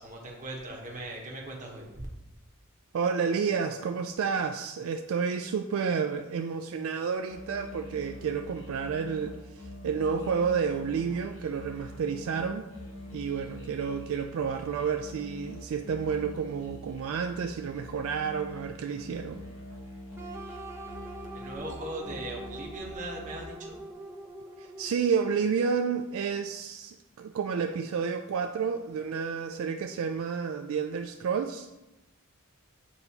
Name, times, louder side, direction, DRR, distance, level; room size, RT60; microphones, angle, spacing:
voice 1, 0.0-2.1 21.3-23.7, right 1 dB, 35° right, -2 dB, 1.0 m, -39 dB
voice 2, 2.9-9.4 9.8-12.7 13.1-19.4 24.6-31.7, right 6 dB, 60° right, 5 dB, 0.3 m, -30 dB
sound 1, 7.3-23.5, left 1 dB, 65° left, 1.6 m, -45 dB
sound 2, 20.2-25.1, right 1 dB, 10° right, 0.6 m, -43 dB
8.7 x 4.0 x 2.8 m, 0.98 s
head